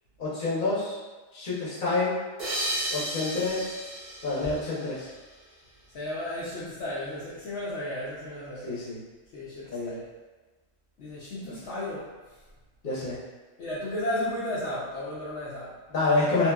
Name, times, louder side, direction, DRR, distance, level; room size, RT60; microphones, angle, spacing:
voice 1, 0.2-0.9 1.3-2.2 2.9-3.7 4.2-5.1 8.6-9.0 9.7-10.0 11.5-11.6 12.8-13.2 15.9-16.5, left 3 dB, 45° left, -8 dB, 1.0 m, -27 dB
sound 1, 2.4-5.5, right 1 dB, 40° right, 0.6 m, -34 dB
voice 2, 5.9-8.7 9.3-10.0 11.0-12.1 13.6-15.7, left 1 dB, 70° left, -9 dB, 0.9 m, -34 dB
2.8 x 2.6 x 2.3 m, 1.2 s
omnidirectional pair, 1.3 m